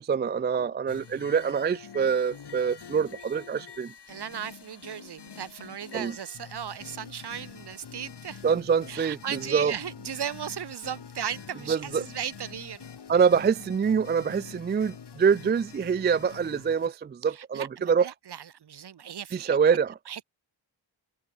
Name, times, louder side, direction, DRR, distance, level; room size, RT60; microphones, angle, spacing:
voice 1, 0.0-3.9 5.9-6.1 8.4-9.7 11.7-12.0 13.1-18.1 19.3-19.9, right 6 dB, 25° right, 0.3 m, -25 dB
sound 1, 0.9-16.9, left 6 dB, 60° left, 2.4 m, -46 dB
voice 2, 4.1-8.4 8.9-12.8 17.3-19.6 20.1-20.2, right 8 dB, 60° right, 1.0 m, -36 dB
cardioid pair, 65°, 45 cm